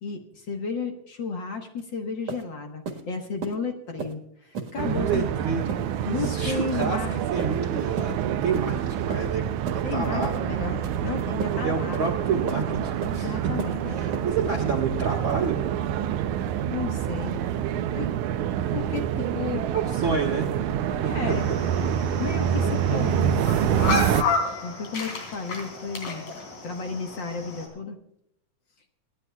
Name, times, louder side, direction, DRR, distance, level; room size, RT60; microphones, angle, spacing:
voice 1, 0.0-5.2 6.0-7.2 9.8-12.0 13.0-14.1 16.7-17.4 17.9-18.1 18.7-19.7 21.0-21.5 22.2-24.0 24.6-26.2 26.6-28.0, left 4 dB, 50° left, 4 dB, 1.6 m, -33 dB
sound 1, 1.8-1.9 2.3-2.4 2.9-3.0 3.4-3.6 4.0-4.1 4.6-4.7 5.1-5.3 5.7-5.8 6.2-6.4 6.8-7.0 7.4-7.6 8.0-8.1 8.5-8.7 9.1-9.3 9.7-9.8 10.2-10.4 10.8-11.0 11.4-11.5 11.9-12.1 12.5-12.6 13.0-13.2 13.6-13.8 14.1-14.3, right 5 dB, 65° right, 2.7 m, -34 dB
sound 2, 4.8-24.2, right 9 dB, 80° right, 2.1 m, -27 dB
voice 2, 4.9-5.7 6.2-7.0 7.3-9.4 9.7-10.4 11.5-13.5 13.8-15.6 19.7-20.5 20.9-21.6, right 5 dB, 45° right, -2 dB, 2.1 m, -29 dB
sound 3, 21.3-27.7, left 4 dB, 75° left, 4.5 m, -32 dB
27.0 x 11.0 x 2.3 m, 0.75 s
omnidirectional pair, 3.4 m